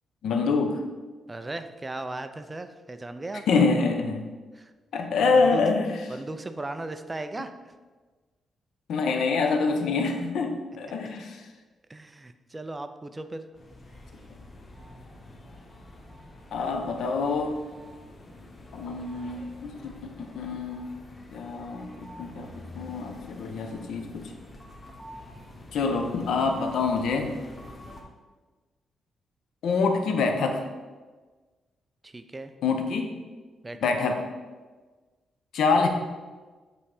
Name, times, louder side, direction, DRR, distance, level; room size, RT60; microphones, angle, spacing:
voice 1, 0.2-0.8 3.5-4.3 4.9-5.9 8.9-11.5 16.5-17.6 18.7-21.0 21.3-24.3 25.7-27.3 29.6-30.6 32.6-33.1 33.8-34.2 35.5-35.9, left 4 dB, 80° left, 5 dB, 0.8 m, -26 dB
voice 2, 1.3-3.6 4.5-4.7 5.3-5.6 6.1-7.7 11.9-13.5 25.8-25.9 32.0-32.5 33.6-33.9, right 2 dB, 20° right, 9 dB, 0.4 m, -37 dB
sound 1, 13.5-28.0, left 1 dB, 30° left, 0.9 m, -46 dB
8.2 x 3.3 x 4.9 m, 1.3 s
cardioid pair, 135°, 0 cm